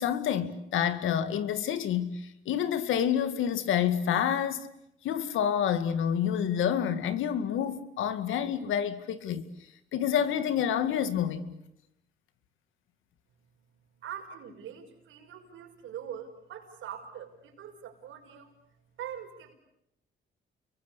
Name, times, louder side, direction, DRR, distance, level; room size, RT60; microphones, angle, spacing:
voice 1, 0.0-4.7 5.0-9.4 9.9-11.5, left 9 dB, 80° left, 2.2 m, -28 dB
voice 2, 14.0-18.5 19.0-19.5, right 9 dB, 80° right, 5.9 m, -43 dB
29.5 x 23.0 x 8.4 m
cardioid pair, 90°, 20 cm